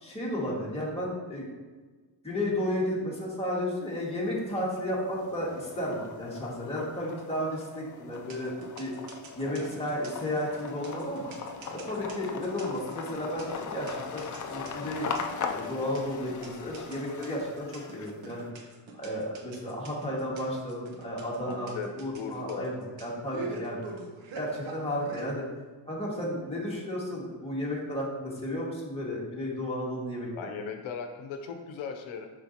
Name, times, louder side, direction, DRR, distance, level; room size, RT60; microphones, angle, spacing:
voice 1, 0.0-1.5 2.2-8.9 9.4-11.3 11.7-15.1 15.5-23.8 24.3-25.4 25.9-30.5, left 1 dB, 15° left, -5 dB, 1.9 m, -33 dB
sound 1, 3.8-4.5 4.9-18.4, left 5 dB, 40° left, 0.6 m, -40 dB
sound 2, 8.1-25.3, right 3 dB, 75° right, 1.2 m, -44 dB
voice 2, 21.4-22.7 30.3-32.3, left 6 dB, 90° left, 5 dB, 0.8 m, -38 dB
7.0 x 5.4 x 2.9 m, 1.3 s
cardioid pair, 105°, 46 cm